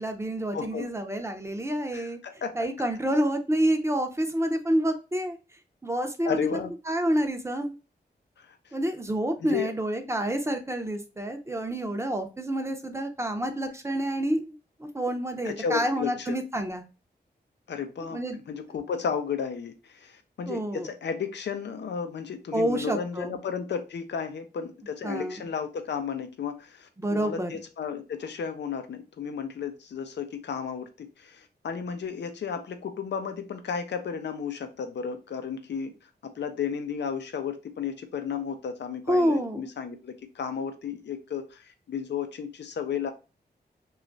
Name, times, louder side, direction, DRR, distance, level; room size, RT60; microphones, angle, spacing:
voice 1, 0.0-2.2 2.5-5.4 5.8-6.5 6.9-7.7 8.7-16.8 18.1-18.4 20.5-20.9 22.5-23.4 25.0-25.4 27.0-27.5 39.1-39.7, right 1 dB, 15° right, 6 dB, 0.6 m, -28 dB
voice 2, 0.5-0.9 1.9-2.5 6.2-6.7 8.4-8.7 9.4-9.7 15.4-16.4 17.7-35.9 36.2-43.1, left 6 dB, 90° left, 7 dB, 0.5 m, -33 dB
3.0 x 2.4 x 3.8 m, 0.31 s
wide cardioid pair, 95°, 17 cm